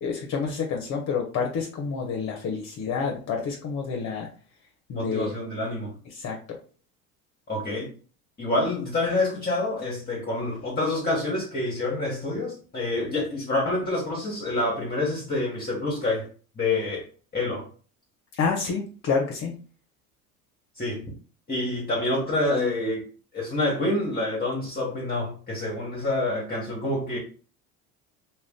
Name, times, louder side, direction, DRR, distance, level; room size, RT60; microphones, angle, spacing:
voice 1, 0.0-4.3 4.9-5.3 6.2-6.6 18.4-19.5, left 5 dB, 45° left, 0.7 m, -28 dB
voice 2, 4.9-5.9 7.5-7.9 8.4-16.3 16.6-17.1 17.3-17.7 20.8-21.1 21.5-23.1 23.3-27.2, left 2 dB, 25° left, 1.0 m, -27 dB
2.4 x 2.2 x 3.5 m
hypercardioid pair, 85°, 40 cm